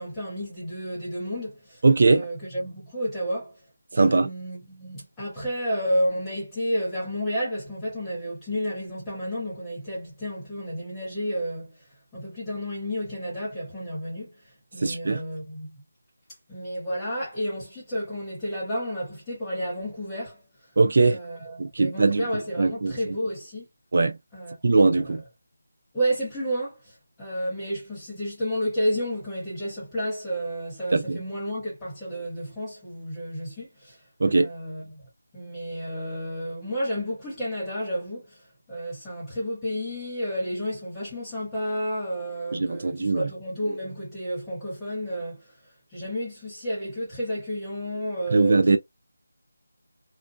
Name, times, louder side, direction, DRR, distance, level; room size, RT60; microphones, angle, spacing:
voice 1, 0.0-3.6 4.0-11.7 12.1-14.3 14.7-15.7 16.5-20.4 21.1-23.7 24.3-25.2 25.9-26.8 27.2-34.0 34.4-35.0 35.3-38.3 38.7-45.5 45.9-48.8, equal, 5° left, 0.8 m, -31 dB
voice 2, 1.8-2.3 3.9-4.3 14.8-15.2 20.8-21.2 21.6-22.3 22.6-23.2 23.9-24.2 24.6-25.2 30.9-31.2 34.2-34.5 42.5-43.3 48.3-48.8, right 3 dB, 30° right, 0.3 m, -21 dB
2.4 x 2.1 x 2.5 m
figure-of-eight pair, 180°, 0 cm